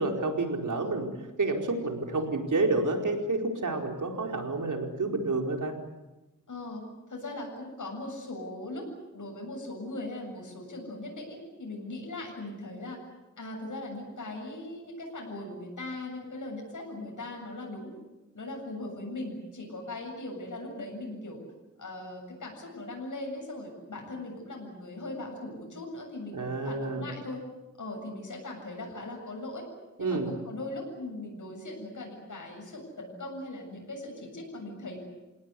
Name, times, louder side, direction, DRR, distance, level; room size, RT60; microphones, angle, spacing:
voice 1, 0.0-5.7 26.3-27.1 30.0-30.4, right 3 dB, 80° right, 3 dB, 4.5 m, -29 dB
voice 2, 6.5-6.8 7.1-8.9 9.1-13.0 13.4-17.9 18.3-21.4 21.8-27.5 27.8-29.7 30.0-35.0, left 2 dB, 75° left, 1 dB, 7.7 m, -39 dB
28.5 x 18.0 x 9.9 m, 1.1 s
wide cardioid pair, 75°, 30 cm